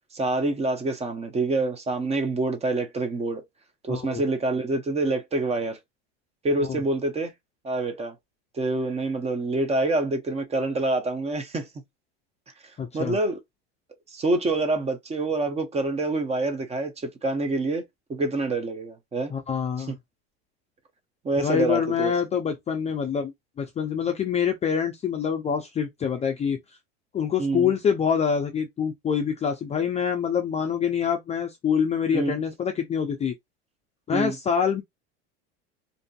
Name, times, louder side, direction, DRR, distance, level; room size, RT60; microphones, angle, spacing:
voice 1, 0.1-3.4 3.8-5.8 6.4-7.3 7.6-8.1 8.5-11.7 12.6-13.4 14.1-19.3 19.9-20.0 21.2-22.1 27.4-27.7 32.1-32.3 34.1-34.4, right 2 dB, 20° right, 0.6 m, -26 dB
voice 2, 3.9-4.2 6.7-6.8 12.8-13.2 19.3-19.9 21.4-23.3 23.6-26.6 27.1-33.3 34.1-34.8, left 7 dB, 20° left, 0.4 m, -26 dB
2.6 x 2.5 x 2.2 m
supercardioid pair, 105°, 32 cm